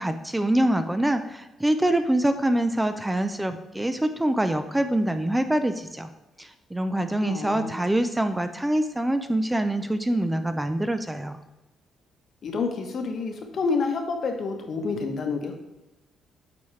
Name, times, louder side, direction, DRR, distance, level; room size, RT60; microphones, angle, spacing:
voice 1, 0.0-6.1 6.4-11.4, right 1 dB, 10° right, 9 dB, 0.4 m, -25 dB
voice 2, 7.2-7.7 12.4-15.6, left 4 dB, 55° left, 4 dB, 1.0 m, -28 dB
8.3 x 4.2 x 3.2 m, 1.0 s
cardioid pair, 90°, 0 cm